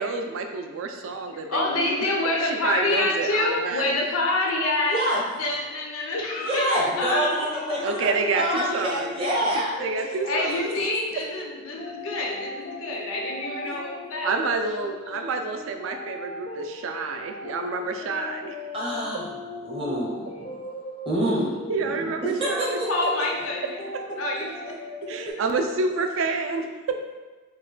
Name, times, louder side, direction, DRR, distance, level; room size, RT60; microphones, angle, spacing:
voice 1, 0.0-1.9 2.5-3.9 7.8-10.8 13.6-13.7 14.2-18.6 21.7-22.8 25.1-26.7, right 4 dB, 75° right, 5 dB, 0.3 m, -29 dB
voice 2, 1.3-5.0 5.3-7.3 8.6-8.7 10.2-14.3 22.9-23.8 24.2-24.8, left 2 dB, 90° left, 0 dB, 0.6 m, -27 dB
voice 3, 4.9-5.2 6.4-9.7 18.7-19.3 19.6-20.3 21.1-22.1 22.4-23.1 23.4-23.5, right 1 dB, 25° right, -4 dB, 0.6 m, -27 dB
sound 1, 6.3-25.3, left 3 dB, 35° left, 0.3 m, -38 dB
3.0 x 2.2 x 3.8 m, 1.3 s
head